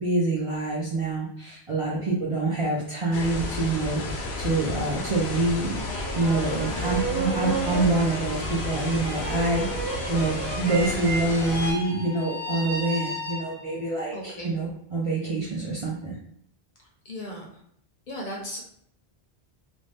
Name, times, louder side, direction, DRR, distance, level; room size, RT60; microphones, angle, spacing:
voice 1, 0.0-16.1, right 2 dB, 45° right, -5 dB, 0.5 m, -26 dB
sound 1, 3.1-11.7, left 3 dB, 85° left, 0.8 m, -32 dB
sound 2, 5.6-13.8, right 3 dB, 65° right, 0.8 m, -33 dB
voice 2, 14.1-14.5 16.8-17.5 18.1-18.6, equal, 55° left, -1 dB, 0.7 m, -37 dB
2.5 x 2.1 x 3.2 m, 0.69 s
omnidirectional pair, 1.1 m